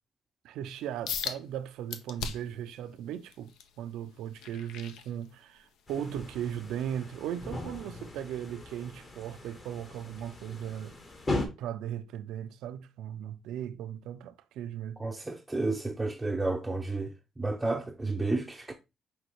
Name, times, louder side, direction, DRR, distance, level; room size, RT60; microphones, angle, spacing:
voice 1, 0.4-11.0 11.6-15.0, right 10 dB, 90° right, 0.4 m, -37 dB
sound 1, 1.1-1.4 1.9-2.6 3.1-5.7 6.1-6.4 6.9-7.0, left 7 dB, 90° left, 0.5 m, -38 dB
sound 2, 5.9-11.5, left 2 dB, 35° left, 1.1 m, -38 dB
voice 2, 15.0-18.7, right 2 dB, 15° right, 0.5 m, -31 dB
5.3 x 2.8 x 3.0 m
cardioid pair, 90°, 0 cm